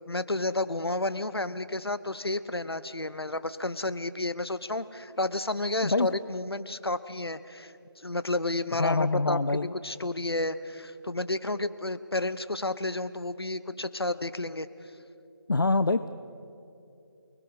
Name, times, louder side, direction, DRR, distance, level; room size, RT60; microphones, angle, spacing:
voice 1, 0.1-7.7 8.0-14.7, left 2 dB, 70° left, 14 dB, 1.1 m, -31 dB
voice 2, 8.8-9.7 15.5-16.1, left 3 dB, 55° left, 12 dB, 0.6 m, -25 dB
29.0 x 20.5 x 5.5 m, 2.7 s
figure-of-eight pair, 160°, 13 cm